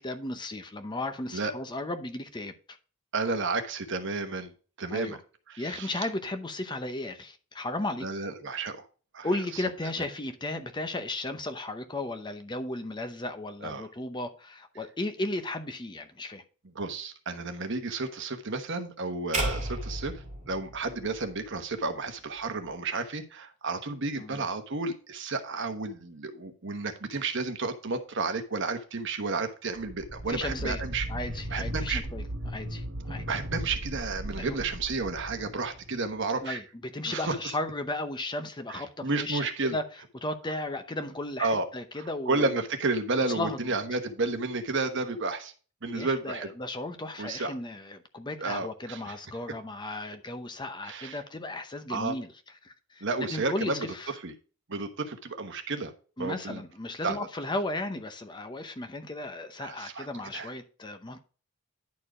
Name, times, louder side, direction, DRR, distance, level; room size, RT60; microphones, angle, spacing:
voice 1, 0.0-2.8 4.9-5.2 5.6-8.1 9.2-16.4 24.2-24.4 30.3-30.8 31.1-33.2 34.4-34.6 36.4-36.6 36.9-39.8 40.2-42.6 43.3-43.6 45.9-52.3 52.6-54.1 56.2-61.2, left 2 dB, 20° left, 0.7 m, -35 dB
voice 2, 3.1-4.5 4.8-5.2 5.5-6.1 8.0-8.9 9.1-9.3 13.6-13.9 16.7-31.1 31.5-32.0 33.3-36.6 37.0-37.4 38.7-39.8 41.4-41.7 41.9-45.5 45.8-46.5 47.2-47.5 48.4-49.1 50.8-51.2 51.9-52.2 53.0-53.9 54.2-54.3 54.7-55.9 56.2-56.6 57.0-57.2 59.6-60.1 60.3-60.5, right 3 dB, 55° right, 1.1 m, -32 dB
sound 1, 19.3-21.6, right 1 dB, 35° right, 2.2 m, -33 dB
sound 2, 29.8-36.2, right 1 dB, 75° right, 1.9 m, -37 dB
10.5 x 4.5 x 4.9 m
head